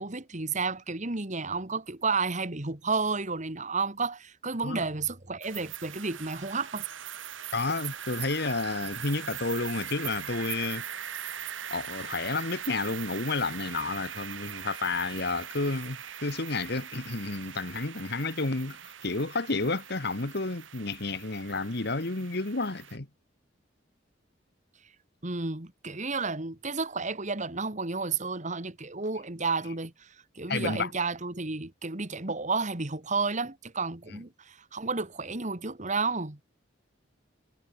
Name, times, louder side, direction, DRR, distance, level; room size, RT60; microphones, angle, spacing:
voice 1, 0.0-6.9 25.2-36.4, right 4 dB, 40° right, 2.0 m, -31 dB
sound 1, 5.4-23.0, right 9 dB, 85° right, 2.0 m, -41 dB
voice 2, 7.5-10.8 11.7-23.1 30.5-30.9, left 3 dB, 60° left, 1.7 m, -31 dB
head